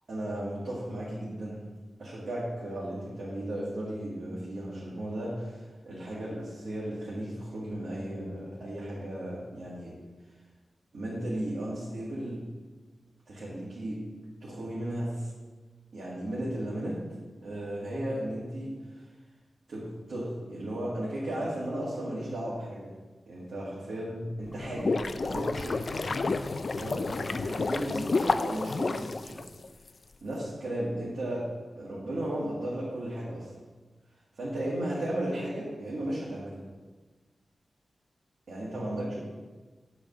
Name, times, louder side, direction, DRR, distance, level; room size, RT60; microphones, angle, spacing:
voice 1, 0.1-1.6 2.0-10.0 10.9-12.4 13.3-14.0 14.4-15.3 15.9-17.0 17.4-19.1 19.7-22.9 23.3-26.0 26.7-29.4 30.2-33.5 34.3-36.6 38.5-39.2, right 1 dB, 65° right, -8 dB, 1.9 m, -35 dB
sound 1, 24.5-29.9, left 3 dB, 45° left, 0.3 m, -30 dB
8.7 x 3.5 x 6.6 m, 1.3 s
wide cardioid pair, 145°, 0 cm